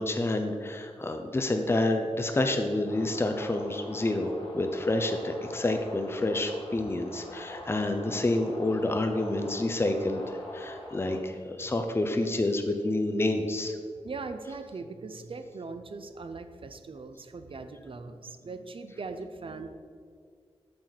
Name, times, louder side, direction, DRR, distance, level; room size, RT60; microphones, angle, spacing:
voice 1, 0.0-13.8, left 2 dB, 25° left, 5 dB, 0.6 m, -28 dB
sound 1, 2.9-11.2, left 1 dB, 80° left, 1.8 m, -44 dB
voice 2, 14.0-19.7, right 4 dB, 55° right, 9 dB, 0.5 m, -40 dB
8.5 x 6.4 x 4.1 m, 2.1 s
wide cardioid pair, 115°, 11 cm